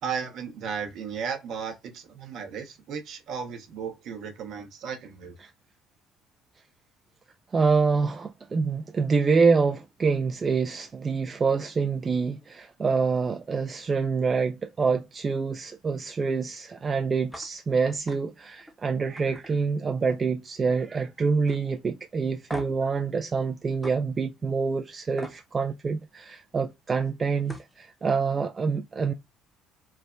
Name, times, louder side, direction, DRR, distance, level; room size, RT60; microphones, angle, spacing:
voice 1, 0.0-5.3, right 6 dB, 60° right, 0.7 m, -35 dB
voice 2, 7.5-29.1, right 5 dB, 35° right, 0.3 m, -26 dB
sound 1, 17.3-17.5 17.8-18.2 18.6-18.8 19.2-20.3 20.6-21.0 21.5-21.6 22.5-22.9 23.8-24.0 25.2-25.4 27.1-27.2 27.4-27.7, equal, ahead, 0.7 m, -41 dB
3.2 x 2.1 x 2.4 m
hypercardioid pair, 60°, 0 cm